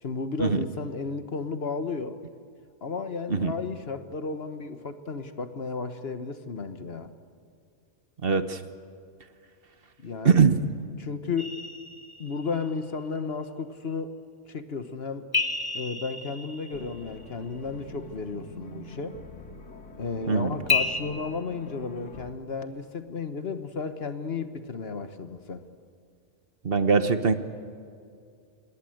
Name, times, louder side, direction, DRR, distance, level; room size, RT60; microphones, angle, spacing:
voice 1, 0.0-2.2 2.8-7.1 10.0-10.5 11.0-11.5 12.2-14.1 14.5-15.3 15.7-19.2 20.0-25.6, left 4 dB, 55° left, 9 dB, 1.5 m, -33 dB
voice 2, 8.2-8.6 10.2-10.6 20.3-20.5 26.6-27.3, right 5 dB, 50° right, 10 dB, 1.3 m, -21 dB
sound 1, 11.4-12.7 15.3-17.3 20.7-21.0, left 4 dB, 20° left, 1.4 m, -30 dB
sound 2, 16.7-22.3, left 1 dB, 85° left, 2.3 m, -45 dB
27.0 x 21.0 x 7.9 m, 2.4 s
omnidirectional pair, 1.2 m